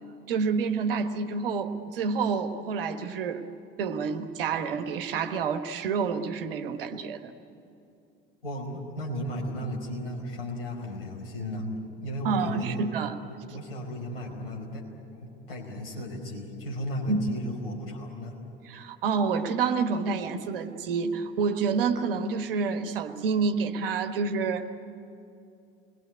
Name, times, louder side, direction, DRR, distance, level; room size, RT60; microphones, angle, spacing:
voice 1, 0.3-3.4 3.8-7.3 12.2-13.2 17.1-17.2 18.6-24.8, right 5 dB, 70° right, 8 dB, 1.4 m, -28 dB
voice 2, 8.4-11.7 12.0-12.8 13.5-14.9 15.2-18.4, left 1 dB, 75° left, 0 dB, 4.7 m, -35 dB
28.0 x 21.5 x 9.5 m, 2.6 s
figure-of-eight pair, 60°, 29 cm